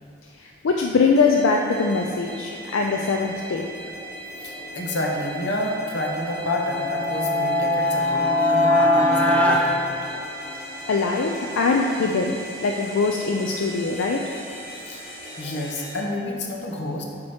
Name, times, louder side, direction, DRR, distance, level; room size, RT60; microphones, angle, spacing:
voice 1, 0.4-3.7 10.9-14.2, left 4 dB, 80° left, 1 dB, 0.4 m, -22 dB
sound 1, 1.2-16.0, right 1 dB, 30° left, 1.3 m, -38 dB
voice 2, 4.4-10.0 14.9-17.0, left 1 dB, 60° left, -1 dB, 0.9 m, -29 dB
sound 2, 6.4-10.7, left 1 dB, 5° left, 0.5 m, -21 dB
8.4 x 2.9 x 4.9 m, 2.4 s
head